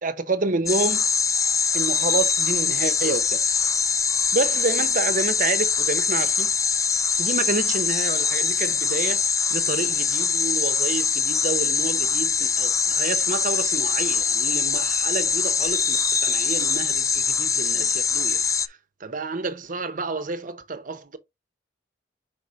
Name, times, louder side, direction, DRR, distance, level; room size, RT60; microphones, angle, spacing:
voice 1, 0.0-1.0 1.7-3.7 4.3-6.5 7.2-18.8 19.0-21.2, right 3 dB, 50° right, 1.0 m, -29 dB
sound 1, 0.7-18.7, left 6 dB, 20° left, 0.4 m, -23 dB
5.2 x 4.9 x 4.0 m
head